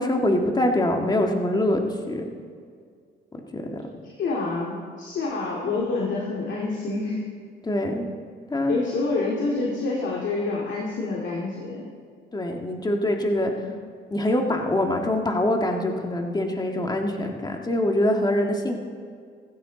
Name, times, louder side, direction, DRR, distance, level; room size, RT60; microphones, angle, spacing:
voice 1, 0.0-2.3 3.5-3.8 7.6-8.1 8.5-8.7 12.3-13.5 14.1-18.8, left 1 dB, 20° left, 2 dB, 1.8 m, -24 dB
voice 2, 4.0-7.3 8.7-11.9 13.5-13.7, left 3 dB, 70° left, -3 dB, 2.3 m, -27 dB
16.0 x 15.5 x 3.9 m, 2.1 s
cardioid pair, 90°, 20 cm